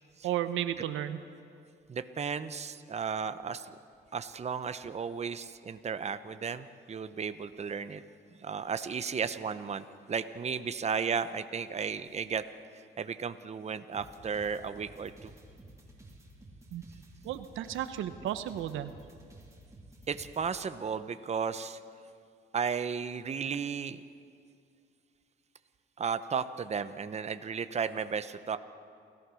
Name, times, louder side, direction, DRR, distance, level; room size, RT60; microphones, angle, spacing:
voice 1, 0.2-1.2 16.7-16.8 17.2-18.9, right 11 dB, 85° right, 11 dB, 0.9 m, -33 dB
voice 2, 1.9-3.7 4.1-8.0 8.4-12.4 12.7-15.3 20.1-21.8 22.5-24.0 26.0-28.6, right 6 dB, 35° right, 11 dB, 0.8 m, -34 dB
sound 1, 13.9-20.4, right 1 dB, 15° right, 3.1 m, -53 dB
28.5 x 15.0 x 6.3 m, 2.3 s
cardioid pair, 90°, 20 cm